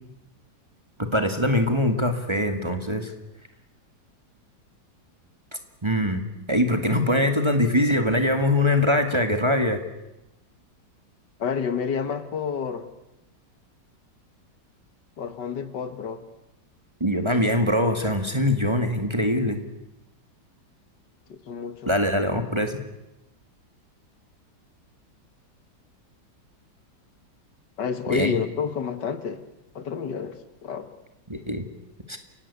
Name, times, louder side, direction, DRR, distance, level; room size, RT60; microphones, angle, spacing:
voice 1, 1.0-3.1 5.8-6.2 6.5-9.8 17.0-19.6 21.9-22.8 28.1-28.4 31.3-31.7 32.1-32.2, left 1 dB, 15° right, 6 dB, 1.8 m, -23 dB
voice 2, 11.4-12.9 15.2-16.2 21.3-21.9 27.8-29.4 29.8-30.9, left 6 dB, 70° left, 11 dB, 2.1 m, -29 dB
29.0 x 16.5 x 8.4 m, 0.93 s
omnidirectional pair, 1.9 m